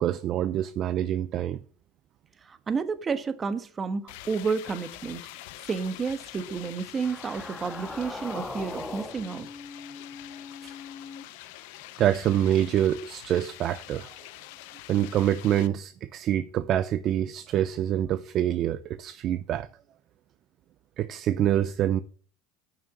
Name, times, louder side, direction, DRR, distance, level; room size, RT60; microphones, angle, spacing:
voice 1, 0.0-1.6 12.0-14.1 14.9-19.7 21.0-22.0, right 11 dB, 50° right, 0.7 m, -26 dB
voice 2, 2.4-9.5 10.6-10.7, right 5 dB, 25° right, 1.3 m, -31 dB
sound 1, 4.1-15.7, left 16 dB, 80° left, 0.8 m, -45 dB
sound 2, 6.9-11.2, left 3 dB, 10° left, 1.8 m, -40 dB
9.3 x 6.2 x 7.2 m
supercardioid pair, 115°, 0 cm